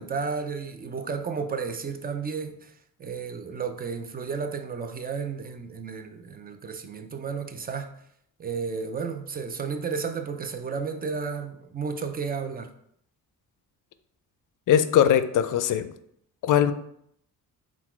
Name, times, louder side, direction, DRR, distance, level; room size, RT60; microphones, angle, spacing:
voice 1, 0.0-2.7 3.0-7.9 8.4-12.7, right 5 dB, 25° right, 0.4 m, -32 dB
voice 2, 14.7-15.9 16.4-16.7, left 9 dB, 55° left, 0.4 m, -20 dB
3.9 x 2.4 x 4.4 m
cardioid pair, 85°, 37 cm